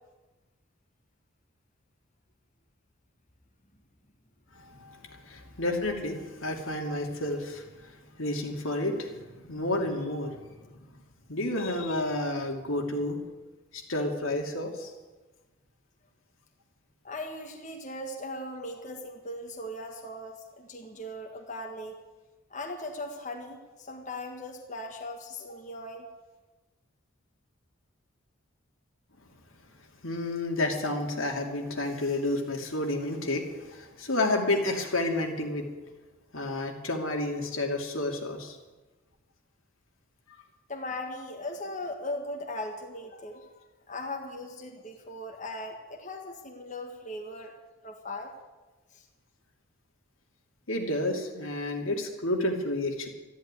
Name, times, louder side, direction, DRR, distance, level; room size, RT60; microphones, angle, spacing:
voice 1, 4.5-10.9 11.3-13.2 13.7-14.9 30.0-35.7 36.3-38.6 50.7-53.1, left 1 dB, 80° left, 2 dB, 2.6 m, -30 dB
voice 2, 17.0-22.0 22.5-26.1 40.7-47.5 47.8-48.3 48.9-49.0, left 1 dB, 35° left, 2 dB, 1.6 m, -39 dB
13.5 x 11.0 x 9.7 m, 1.2 s
head